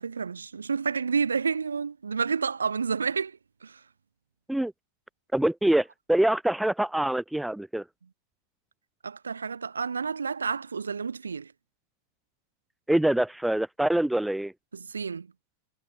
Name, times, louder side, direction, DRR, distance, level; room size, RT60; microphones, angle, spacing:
voice 1, 0.0-3.8 9.0-11.5 14.7-15.3, right 5 dB, 75° right, 6.8 m, -30 dB
voice 2, 5.3-7.8 12.9-14.5, right 1 dB, 5° right, 3.4 m, -25 dB
figure-of-eight pair, 90°, 0 cm